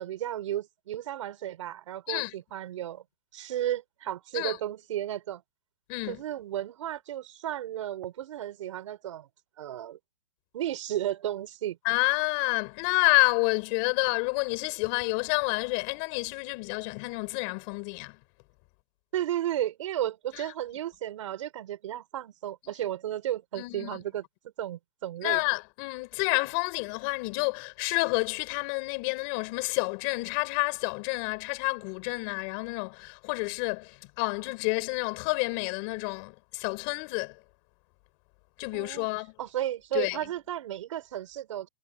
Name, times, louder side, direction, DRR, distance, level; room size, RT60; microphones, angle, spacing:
voice 1, 0.0-3.0 3.3-5.4 6.1-9.3 9.6-10.0 10.5-11.8 19.1-24.2 24.6-25.4 38.7-39.1 39.4-41.7, right 12 dB, 55° right, 6.3 m, -33 dB
voice 2, 5.9-6.2 11.8-18.2 20.3-20.4 22.7-22.8 23.6-24.0 25.2-37.4 38.6-39.3 39.9-40.2, left 33 dB, 35° left, 5.2 m, -29 dB
hypercardioid pair, 160°, 19 cm